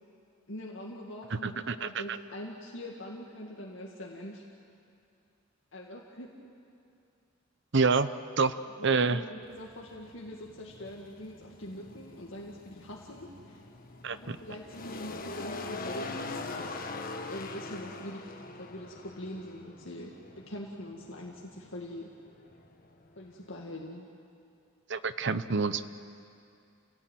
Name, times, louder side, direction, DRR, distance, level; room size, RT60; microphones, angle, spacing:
voice 1, 0.5-4.5 5.7-6.3 8.8-13.7 14.1-16.8 17.3-22.1 23.2-24.1, left 1 dB, 75° left, -2 dB, 2.2 m, -43 dB
voice 2, 1.3-2.2 7.7-8.1 8.4-8.5 8.8-9.2 14.0-14.4 24.9-25.9, right 4 dB, 60° right, 12 dB, 0.9 m, -27 dB
sound 1, 9.4-23.9, left 3 dB, 45° left, 1.4 m, -43 dB
28.5 x 17.5 x 9.3 m, 2.5 s
head